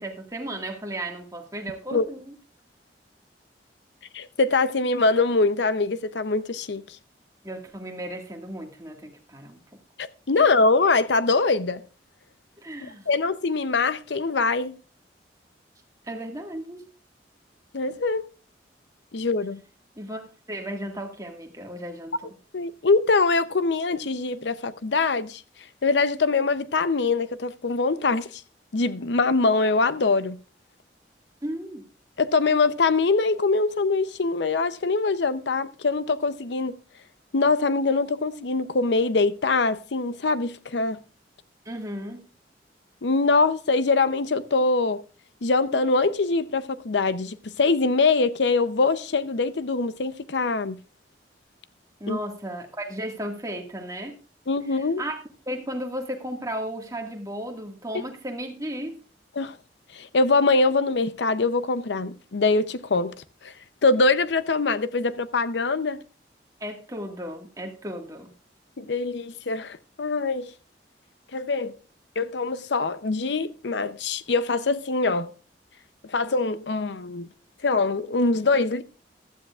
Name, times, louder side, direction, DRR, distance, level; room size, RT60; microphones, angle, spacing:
voice 1, 0.0-2.3 7.4-9.6 10.4-10.5 12.6-13.1 16.1-16.9 20.0-22.4 31.4-31.8 41.7-42.3 52.0-54.2 54.7-55.2 55.5-59.0 66.6-68.3, right 1 dB, 20° right, 1.8 m, -35 dB
voice 2, 4.1-7.0 10.0-11.8 13.1-14.8 17.7-18.2 19.1-19.6 22.5-25.4 25.8-28.4 28.7-30.4 32.2-36.8 37.3-41.0 43.0-45.0 45.4-50.8 52.1-52.2 54.5-55.0 59.4-59.6 59.9-63.1 63.4-63.5 63.8-66.0 68.8-70.5 71.3-71.7 72.2-75.3 76.1-77.3 77.6-78.8, left 3 dB, 75° left, 0.7 m, -23 dB
15.0 x 12.5 x 2.4 m
head